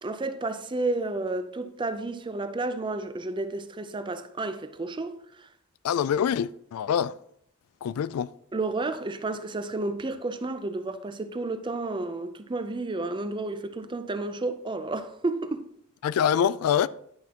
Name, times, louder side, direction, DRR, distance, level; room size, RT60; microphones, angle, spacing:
voice 1, 0.0-5.5 8.5-15.7, right 2 dB, 20° right, 0.5 m, -31 dB
voice 2, 5.8-7.2 7.8-8.3 16.0-16.9, left 8 dB, 80° left, 0.3 m, -25 dB
10.5 x 6.0 x 2.9 m
head